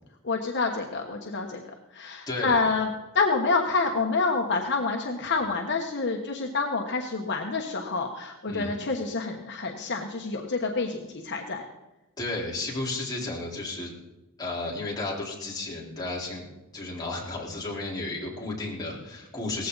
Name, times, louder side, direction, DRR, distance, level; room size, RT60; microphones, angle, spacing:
voice 1, 0.2-1.6 1.9-2.9 3.1-11.6, left 4 dB, 55° left, 2 dB, 1.2 m, -27 dB
voice 2, 2.3-2.6 8.5-8.7 12.2-13.9 14.4-16.4 16.7-19.7, left 2 dB, 20° left, -4 dB, 4.1 m, -33 dB
18.0 x 15.5 x 4.0 m, 1.0 s
head